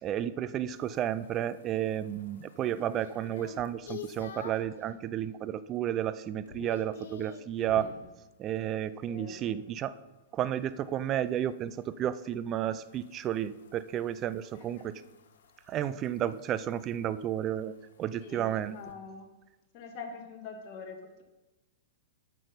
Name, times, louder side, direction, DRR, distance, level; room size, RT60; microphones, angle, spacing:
voice 1, 0.0-7.9 8.4-10.0 10.3-14.9 15.7-17.7 18.0-18.8, right 11 dB, 30° right, 15 dB, 0.4 m, -32 dB
sound 1, 0.7-4.8 5.3-5.7 6.0-8.1 10.5-18.9, left 7 dB, 75° left, 1.0 m, -50 dB
voice 2, 9.0-9.6 14.5-14.9 18.2-19.3 19.7-21.2, left 4 dB, 45° left, 2 dB, 1.6 m, -45 dB
8.8 x 6.1 x 5.2 m, 1.1 s
hypercardioid pair, 125°, 0 cm